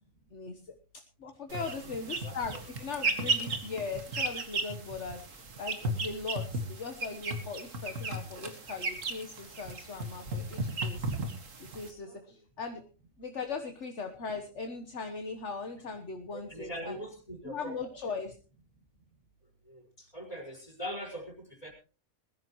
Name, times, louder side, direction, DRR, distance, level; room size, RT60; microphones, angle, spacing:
voice 1, 0.3-0.7 1.2-11.1 11.6-12.8 13.2-17.0 17.4-18.3 20.0-20.1, left 4 dB, 60° left, 5 dB, 1.5 m, -39 dB
voice 2, 1.5-1.9 2.2-2.3 12.0-12.2 16.3-17.9 19.7-19.8 20.1-21.7, equal, 25° left, 0 dB, 5.0 m, -41 dB
sound 1, 1.5-11.9, right 2 dB, 65° right, 2.2 m, -35 dB
21.0 x 14.0 x 3.1 m, 0.35 s
omnidirectional pair, 1.4 m